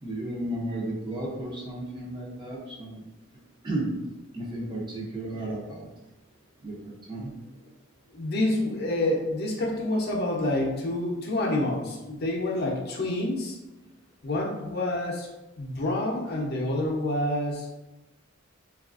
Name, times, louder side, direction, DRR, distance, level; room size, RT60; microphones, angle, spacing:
voice 1, 0.0-3.0 3.6-3.9 4.3-5.9 6.6-7.3, right 1 dB, 20° right, -4 dB, 0.5 m, -33 dB
voice 2, 8.1-13.6 14.2-15.3 15.6-17.7, left 1 dB, 50° left, -2 dB, 0.6 m, -28 dB
3.1 x 2.3 x 2.4 m, 1.0 s
head